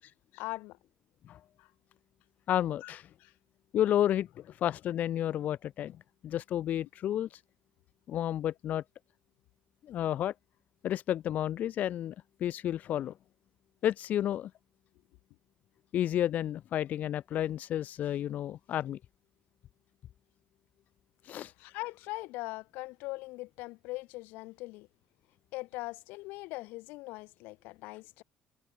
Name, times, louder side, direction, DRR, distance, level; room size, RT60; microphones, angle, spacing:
voice 1, 0.3-0.8 1.6-1.7 2.8-2.9 3.2-3.3 21.6-24.9 25.5-28.2, left 22 dB, 85° left, 0.8 m, -41 dB
voice 2, 2.5-3.1 3.7-6.0 6.2-7.4 8.1-8.8 9.8-10.3 10.8-12.2 12.4-13.1 13.8-14.5 15.9-19.0 21.2-21.5, left 11 dB, 60° left, 0.4 m, -31 dB
cardioid pair, 90°, 3 cm